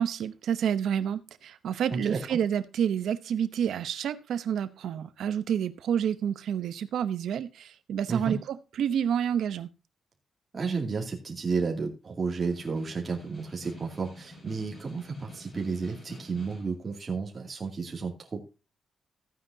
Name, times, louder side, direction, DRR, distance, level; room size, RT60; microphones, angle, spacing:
voice 1, 0.0-9.7, right 8 dB, 80° right, 0.8 m, -29 dB
voice 2, 10.5-18.4, right 4 dB, 30° right, 2.5 m, -32 dB
Snare drum, 12.1-16.8, left 1 dB, 25° left, 6.0 m, -49 dB
14.5 x 9.3 x 2.8 m
wide cardioid pair, 175°, 0 cm